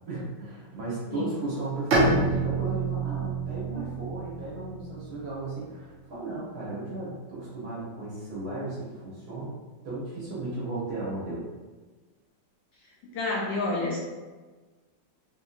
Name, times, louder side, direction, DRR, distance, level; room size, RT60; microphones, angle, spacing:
voice 1, 0.1-9.6 9.8-11.4, right 2 dB, 55° right, -8 dB, 1.3 m, -35 dB
Bowed string instrument, 1.9-5.5, right 2 dB, 75° right, 0.6 m, -28 dB
voice 2, 13.1-14.0, left 2 dB, 75° left, -4 dB, 1.1 m, -28 dB
3.8 x 2.7 x 2.4 m, 1.3 s
omnidirectional pair, 2.4 m